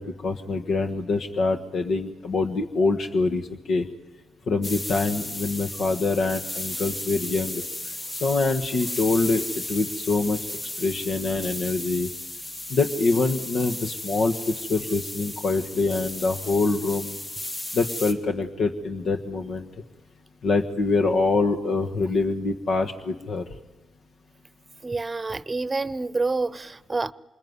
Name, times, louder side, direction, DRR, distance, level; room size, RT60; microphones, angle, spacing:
voice 1, 0.0-3.9 4.5-7.9 8.2-10.4 10.8-12.1 12.7-17.2 17.7-19.7 20.4-23.4, left 3 dB, 65° left, 1.5 m, -25 dB
sound 1, 4.6-18.1, left 1 dB, 40° left, 4.1 m, -35 dB
voice 2, 24.8-27.1, right 3 dB, 30° right, 0.9 m, -28 dB
27.0 x 21.0 x 9.6 m
supercardioid pair, 55°, 0 cm